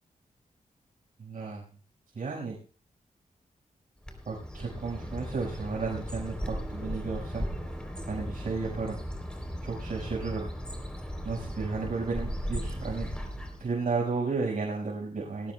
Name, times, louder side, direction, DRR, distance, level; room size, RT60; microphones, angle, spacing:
voice 1, 1.2-1.6 2.1-2.6 4.3-7.5 8.1-8.9 9.6-10.5 11.2-13.1 13.6-15.5, right 4 dB, 60° right, -3 dB, 5.1 m, -33 dB
Bird, 4.0-13.7, equal, 5° left, 3.4 m, -37 dB
19.5 x 17.5 x 2.3 m, 0.36 s
wide cardioid pair, 100°, 15 cm